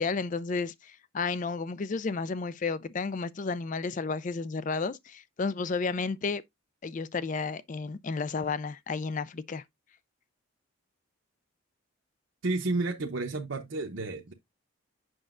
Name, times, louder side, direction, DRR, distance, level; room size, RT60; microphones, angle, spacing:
voice 1, 0.0-6.4 6.8-9.6, left 4 dB, 35° left, 0.4 m, -32 dB
voice 2, 12.4-14.3, right 2 dB, 60° right, 0.8 m, -31 dB
7.7 x 5.9 x 2.5 m
head